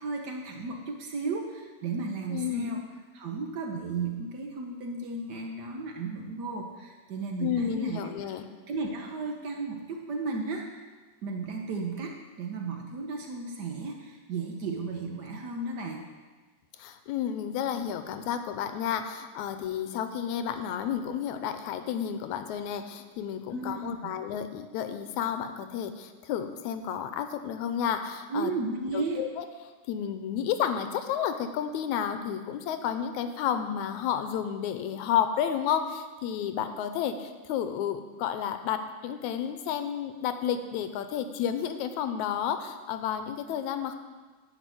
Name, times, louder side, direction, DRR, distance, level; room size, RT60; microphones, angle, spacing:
voice 1, 0.0-2.9 3.1-8.1 8.7-10.9 11.2-16.0 23.5-24.2 28.3-29.2, right 3 dB, 80° right, 2 dB, 0.9 m, -34 dB
voice 2, 2.3-2.8 7.4-8.5 16.8-28.5 28.9-29.5 29.9-43.9, left 9 dB, 85° left, 8 dB, 2.0 m, -31 dB
11.0 x 5.9 x 7.6 m, 1.3 s
omnidirectional pair, 3.3 m